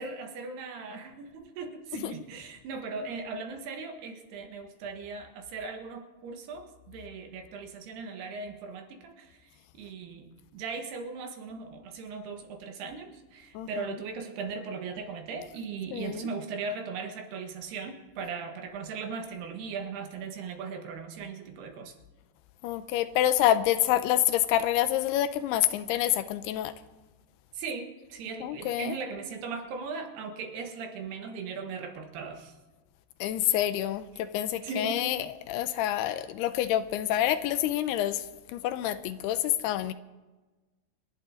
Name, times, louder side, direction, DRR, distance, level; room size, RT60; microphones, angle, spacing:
voice 1, 0.0-22.0 27.5-32.5 34.6-35.1, right 5 dB, 75° right, 4 dB, 3.6 m, -38 dB
voice 2, 13.5-13.9 15.9-16.3 22.6-26.7 28.4-29.0 33.2-39.9, left 12 dB, 80° left, 12 dB, 2.6 m, -27 dB
28.0 x 11.0 x 3.8 m, 1.2 s
omnidirectional pair, 4.8 m